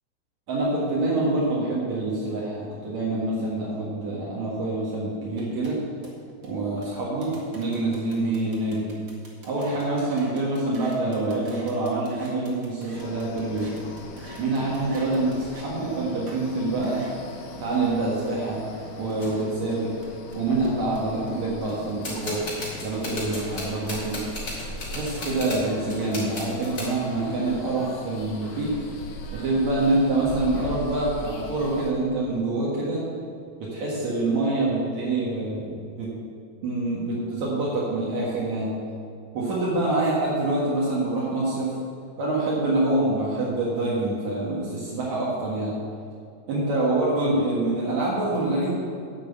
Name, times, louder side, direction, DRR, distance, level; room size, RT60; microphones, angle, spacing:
voice 1, 0.5-5.8 6.4-8.9 9.4-13.8 14.4-17.0 17.6-18.6 19.0-19.9 20.3-22.4 22.8-24.2 24.8-28.7 29.3-33.0 33.6-36.1 36.6-38.7 39.3-41.7 42.2-45.8 46.5-48.7, right 2 dB, 70° right, -7 dB, 3.0 m, -26 dB
sound 1, 5.4-15.7 16.3-16.4 16.8-21.3, right 2 dB, 40° right, 2.3 m, -49 dB
sound 2, 12.9-31.9, left 1 dB, 65° left, 2.2 m, -40 dB
sound 3, 18.3-18.4 19.2-19.3 20.0-20.1 20.3-20.8 21.6-26.9, left 1 dB, 35° left, 3.7 m, -36 dB
11.5 x 6.1 x 8.0 m, 2.4 s
omnidirectional pair, 3.4 m